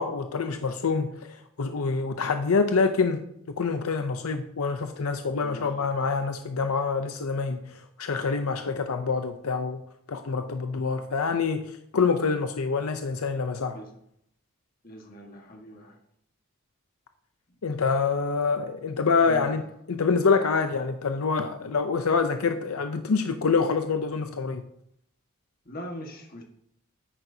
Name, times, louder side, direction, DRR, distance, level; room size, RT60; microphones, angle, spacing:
voice 1, 0.0-3.2 3.6-9.8 10.1-13.8 17.6-24.6, left 4 dB, 80° left, 7 dB, 0.6 m, -26 dB
voice 2, 5.4-6.0 13.7-13.9 14.8-16.0 19.2-19.5 25.7-26.4, left 1 dB, 40° left, 2 dB, 1.5 m, -41 dB
10.0 x 8.8 x 2.8 m, 0.73 s
head